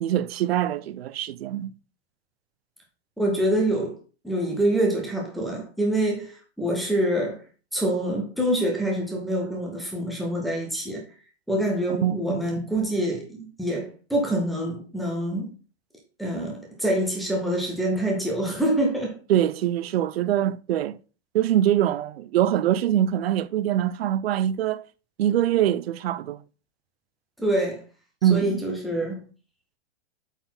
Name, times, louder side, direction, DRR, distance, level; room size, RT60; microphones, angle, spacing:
voice 1, 0.0-1.7 12.0-12.4 19.3-21.0 21.3-24.9 25.2-26.4 28.2-28.6, right 11 dB, 60° right, 0.6 m, -23 dB
voice 2, 3.2-3.9 4.2-7.4 7.7-11.0 11.5-15.5 16.2-19.1 27.4-27.8 28.3-29.2, right 1 dB, ahead, 0.4 m, -26 dB
8.0 x 4.2 x 4.3 m
supercardioid pair, 170°, 34 cm